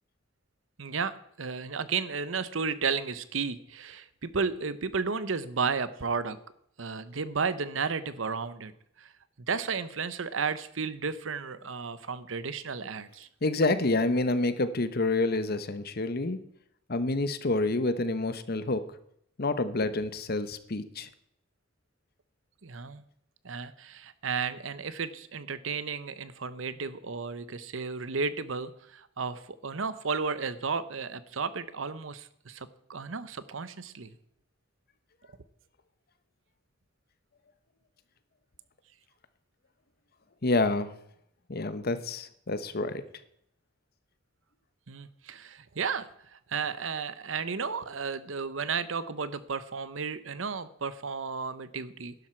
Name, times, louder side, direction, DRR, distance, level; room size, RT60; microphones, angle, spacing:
voice 1, 0.8-6.4 6.8-8.7 9.0-9.1 9.5-13.3 22.6-23.0 23.4-34.1 44.9-52.1, right 5 dB, 80° right, 14 dB, 0.8 m, -33 dB
voice 2, 13.4-16.4 16.9-18.8 19.4-21.1 40.4-40.9 41.5-43.0, left 2 dB, 50° left, 12 dB, 1.0 m, -28 dB
12.0 x 11.0 x 4.5 m, 0.72 s
head